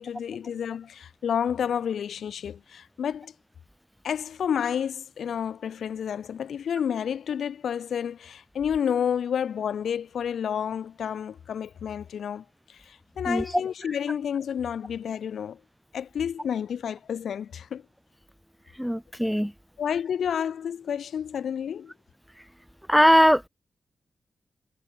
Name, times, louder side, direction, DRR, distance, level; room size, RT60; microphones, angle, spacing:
voice 1, 0.0-3.3 4.0-15.6 15.9-17.8 19.8-21.9, left 8 dB, 80° left, 6.2 m, -30 dB
voice 2, 18.8-19.5 22.9-23.5, equal, ahead, 0.6 m, -20 dB
cardioid pair, 75°, 0 cm